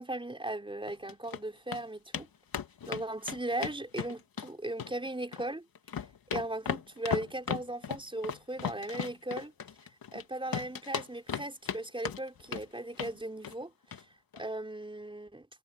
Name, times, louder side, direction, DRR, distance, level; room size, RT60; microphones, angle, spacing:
voice 1, 0.0-2.3 2.9-5.7 6.3-9.5 10.1-13.7 14.3-15.5, right 1 dB, 15° right, 4.4 m, -37 dB
sound 1, 0.9-1.4 1.7-1.8 2.1-2.3 2.5-4.5 4.8-5.5 5.8-10.2 10.5-11.8 12.1-12.7 13.0-13.2 13.4-13.6 13.9-14.0 14.3-14.4, left 7 dB, 60° left, 2.4 m, -36 dB
cardioid pair, 70°, 39 cm